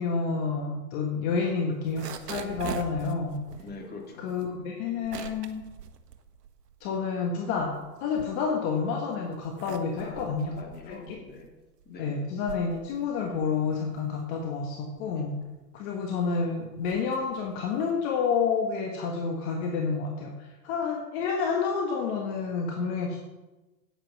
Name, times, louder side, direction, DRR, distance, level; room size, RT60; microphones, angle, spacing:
voice 1, 0.0-3.3 4.2-5.6 6.8-7.7 8.0-10.5 10.9-11.2 12.0-15.3 15.7-23.2, left 5 dB, 40° left, 1 dB, 1.6 m, -29 dB
sound 1, 1.7-7.0 7.4-8.8 9.3-18.1, right 8 dB, 70° right, 1.3 m, -43 dB
voice 2, 3.6-4.3 10.0-10.3 10.6-11.5 11.8-12.1 15.2-15.3, left 3 dB, 20° left, 0 dB, 2.4 m, -43 dB
9.0 x 9.0 x 6.1 m, 1.1 s
hypercardioid pair, 120°, 50 cm